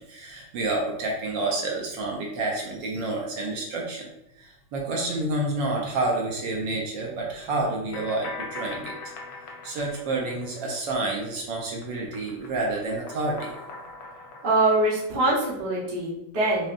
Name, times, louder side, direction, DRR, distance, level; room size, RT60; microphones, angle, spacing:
voice 1, 0.0-4.1 4.4-8.9 9.6-13.5, right 2 dB, 75° right, -1 dB, 1.3 m, -29 dB
sound 1, 7.9-11.4 11.7-15.6, left 3 dB, 70° left, 1.1 m, -41 dB
voice 2, 14.4-16.7, right 2 dB, 40° right, -6 dB, 0.9 m, -23 dB
4.9 x 2.1 x 2.6 m, 0.85 s
omnidirectional pair, 2.1 m